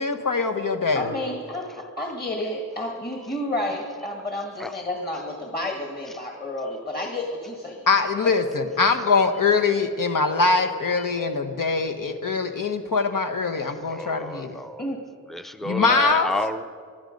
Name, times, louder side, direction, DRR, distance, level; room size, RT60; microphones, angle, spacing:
voice 1, 0.0-1.1 7.9-14.6 15.6-16.3, left 4 dB, 75° left, 6 dB, 1.1 m, -23 dB
voice 2, 0.9-7.9 14.8-15.0, left 1 dB, 30° left, 0 dB, 1.8 m, -30 dB
voice 3, 14.0-14.8 15.3-16.6, left 1 dB, ahead, 9 dB, 0.6 m, -30 dB
21.5 x 12.0 x 5.3 m, 2.1 s
wide cardioid pair, 115°, 33 cm